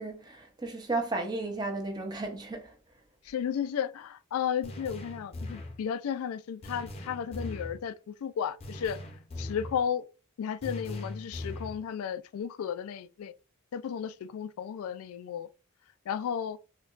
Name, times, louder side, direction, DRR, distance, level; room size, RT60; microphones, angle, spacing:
voice 1, 0.0-2.7, right 2 dB, 20° right, 0.6 m, -34 dB
voice 2, 3.2-9.0 9.4-10.0 10.4-13.3 13.7-15.5 16.1-16.6, left 8 dB, 90° left, 0.3 m, -33 dB
sound 1, 4.6-5.8 6.6-7.8 8.6-9.8 10.6-11.8, left 2 dB, 30° left, 0.6 m, -40 dB
4.3 x 2.2 x 2.4 m
head